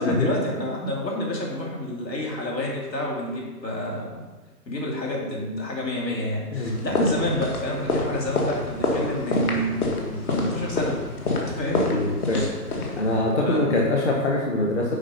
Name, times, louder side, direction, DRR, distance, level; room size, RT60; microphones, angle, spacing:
voice 1, 0.0-4.2 4.7-11.0 11.6-12.5 13.4-13.8, left 1 dB, 80° left, -2 dB, 3.2 m, -28 dB
sound 1, 6.7-13.2, left 2 dB, 60° left, 1.9 m, -27 dB
voice 2, 11.8-12.5 13.0-15.0, left 2 dB, 45° left, -1 dB, 1.2 m, -24 dB
8.8 x 5.2 x 5.5 m, 1.3 s
hypercardioid pair, 170°, 50 cm